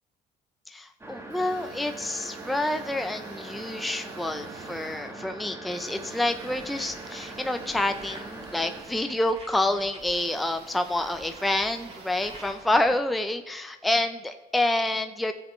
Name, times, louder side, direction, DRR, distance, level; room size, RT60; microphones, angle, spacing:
voice 1, 0.7-15.3, left 1 dB, ahead, 6 dB, 0.5 m, -28 dB
sound 1, 1.0-8.8, right 2 dB, 15° right, 1.4 m, -42 dB
sound 2, 1.3-13.5, right 5 dB, 80° right, 1.6 m, -48 dB
sound 3, 6.2-12.9, right 2 dB, 35° right, 3.4 m, -48 dB
16.0 x 7.4 x 3.1 m, 1.3 s
cardioid pair, 110°, 17 cm